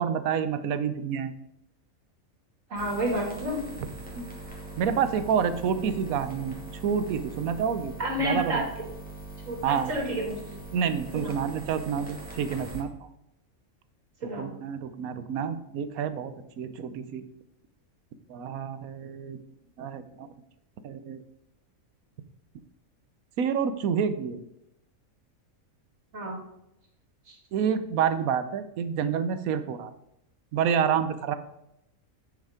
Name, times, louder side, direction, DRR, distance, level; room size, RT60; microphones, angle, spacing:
voice 1, 0.0-1.3 4.1-4.2 4.8-6.6 6.8-7.9 8.2-8.6 9.6-9.9 10.7-12.9 14.4-17.2 18.3-19.4 19.8-20.3 20.8-21.2 23.4-24.4 27.5-29.9 30.5-31.3, right 7 dB, 80° right, 11 dB, 1.2 m, -28 dB
voice 2, 2.7-3.6 8.0-8.7 9.5-10.5 11.1-11.3 14.2-14.5 26.1-26.4 27.3-27.4, right 1 dB, 65° right, 0 dB, 2.6 m, -30 dB
sound 1, 2.8-12.8, right 2 dB, 5° left, 2.2 m, -42 dB
9.2 x 5.4 x 5.0 m, 0.83 s
omnidirectional pair, 1.5 m